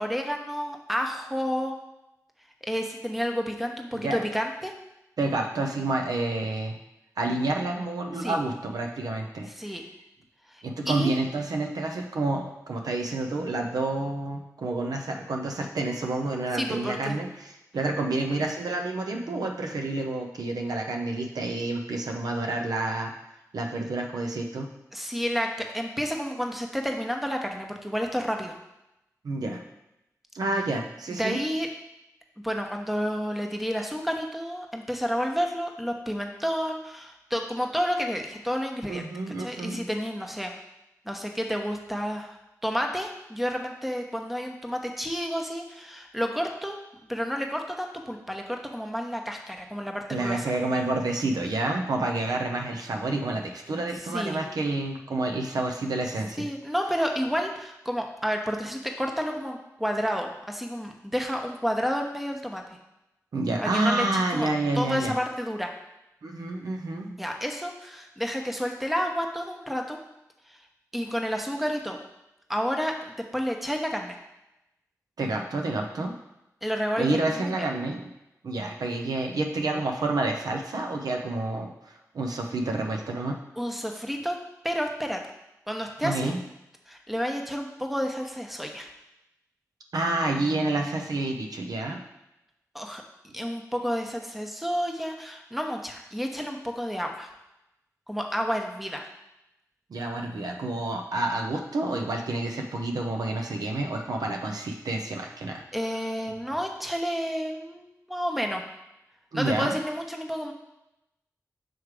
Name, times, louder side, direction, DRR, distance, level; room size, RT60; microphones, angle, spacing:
voice 1, 0.0-1.7 2.6-4.7 8.2-8.4 9.5-9.8 10.5-11.1 16.5-17.2 24.9-25.5 25.7-28.5 31.2-31.7 32.4-40.5 41.1-42.4 42.6-46.8 47.1-50.5 54.1-54.4 56.4-62.6 63.6-64.5 64.7-65.7 67.2-70.0 70.5-70.6 70.9-72.0 72.5-74.2 76.6-77.5 83.6-84.4 84.6-85.2 85.7-86.3 86.9-88.9 92.7-93.0 93.3-97.3 98.1-99.1 105.7-108.6 109.3-110.5, equal, 5° right, 3 dB, 0.9 m, -30 dB
voice 2, 5.2-6.8 7.2-9.7 10.6-23.1 23.5-24.7 29.2-29.7 30.3-31.4 38.9-39.9 50.1-56.5 63.3-65.1 66.2-67.2 75.2-76.2 77.0-78.1 78.4-83.4 86.0-86.4 89.9-92.0 99.9-105.6 109.3-109.8, right 2 dB, 85° right, 2 dB, 0.6 m, -29 dB
6.1 x 3.2 x 4.8 m, 0.91 s
cardioid pair, 45°, 6 cm